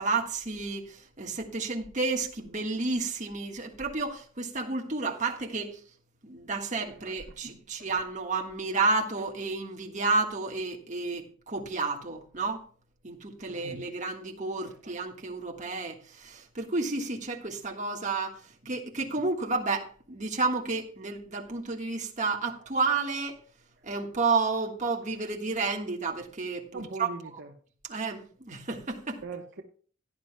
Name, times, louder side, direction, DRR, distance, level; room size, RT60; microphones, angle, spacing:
voice 1, 0.0-5.8 6.2-12.6 13.0-23.4 23.8-27.1 27.9-29.2, right 3 dB, 40° right, 1.6 m, -31 dB
voice 2, 26.7-27.5 29.2-29.6, right 3 dB, 60° right, 1.0 m, -40 dB
17.0 x 9.9 x 2.3 m
head